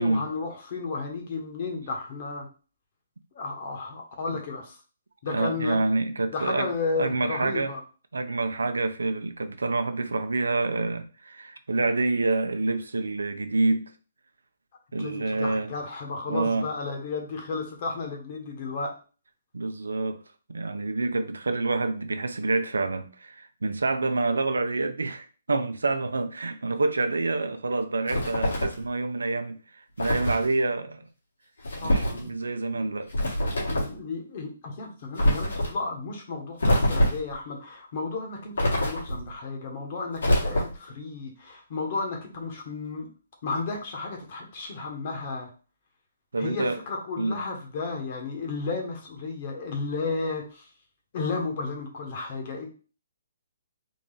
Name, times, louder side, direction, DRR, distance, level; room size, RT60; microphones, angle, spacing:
voice 1, 0.0-2.5 3.3-4.8 5.2-5.8 6.3-7.8 15.0-18.9 31.8-32.3 32.8-33.0 33.7-43.1 43.4-45.5 46.4-50.7 51.1-52.7, left 3 dB, 45° left, 2 dB, 1.3 m, -33 dB
voice 2, 5.3-6.7 7.0-7.7 8.1-13.9 14.9-15.7 16.3-16.7 19.5-20.2 20.5-31.1 31.8-33.1 46.3-46.8 47.2-47.4, right 3 dB, 90° right, 8 dB, 0.6 m, -27 dB
sound 1, 28.1-28.8 30.0-30.4 31.6-32.2 33.1-34.0 35.2-35.7 36.6-37.3 38.6-39.3 40.2-40.9, equal, 80° left, 1.9 m, -24 dB
3.8 x 2.4 x 3.9 m, 0.36 s
hypercardioid pair, 145°, 0 cm